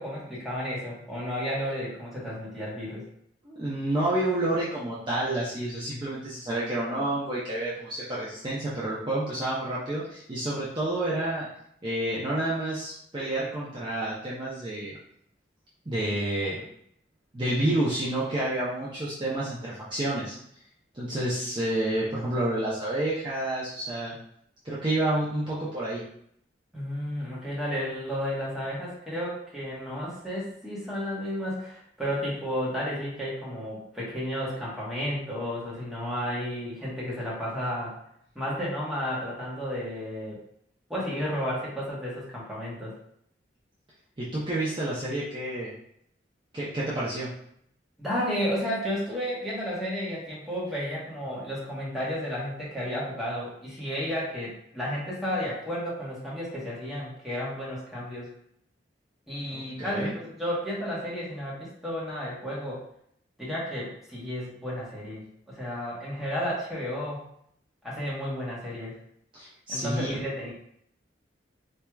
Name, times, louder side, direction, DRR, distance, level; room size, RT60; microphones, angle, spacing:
voice 1, 0.0-3.0 26.7-38.0 38.3-40.4 40.9-42.9 48.0-58.3 59.3-62.8 63.4-67.2 67.8-69.0 69.7-70.5, equal, ahead, -7 dB, 1.2 m, -32 dB
voice 2, 3.4-11.5 11.8-15.0 15.9-16.6 17.3-20.4 20.9-24.1 24.6-26.0 44.2-45.7 46.5-47.3 59.5-60.1 69.3-70.2, right 1 dB, 25° right, -8 dB, 0.7 m, -29 dB
4.4 x 2.7 x 2.3 m, 0.69 s
head